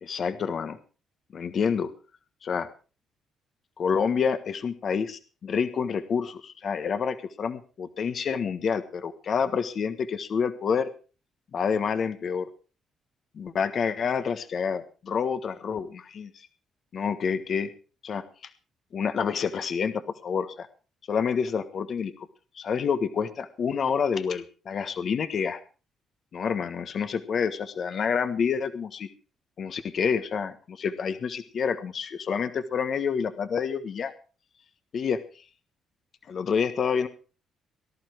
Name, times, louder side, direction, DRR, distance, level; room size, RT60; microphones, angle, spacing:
voice 1, 0.0-0.8 1.3-1.9 2.4-2.7 3.8-10.9 11.5-12.5 13.3-16.5 16.9-17.7 18.0-18.2 18.9-20.7 21.1-22.3 22.5-25.6 26.3-29.1 29.6-34.1 34.9-35.2 36.3-37.1, left 6 dB, 55° left, 10 dB, 1.4 m, -28 dB
19.0 x 11.5 x 4.6 m, 0.36 s
cardioid pair, 90°, 0 cm